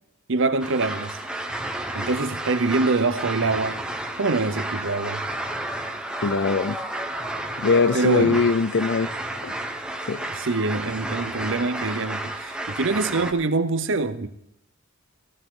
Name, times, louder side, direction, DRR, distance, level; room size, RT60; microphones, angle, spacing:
voice 1, 0.3-1.2 1.9-3.8 4.2-5.2 7.9-8.4 10.2-14.3, right 3 dB, 60° right, 0.8 m, -24 dB
sound 1, 0.6-13.3, right 1 dB, 5° right, 1.1 m, -32 dB
voice 2, 6.2-6.8 7.6-9.1 9.4-9.6 10.1-10.2, left 4 dB, 55° left, 0.5 m, -21 dB
15.5 x 15.0 x 3.8 m
head